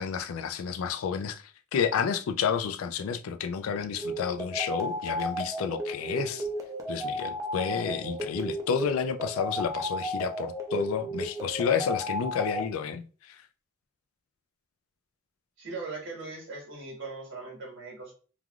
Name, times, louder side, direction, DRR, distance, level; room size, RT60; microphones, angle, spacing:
voice 1, 0.0-1.4 1.7-6.5 6.9-13.4, left 7 dB, 85° left, 0.3 m, -30 dB
sound 1, 4.0-12.6, equal, 15° right, 0.4 m, -34 dB
voice 2, 15.6-18.1, right 3 dB, 65° right, 1.3 m, -39 dB
3.3 x 2.3 x 2.3 m
head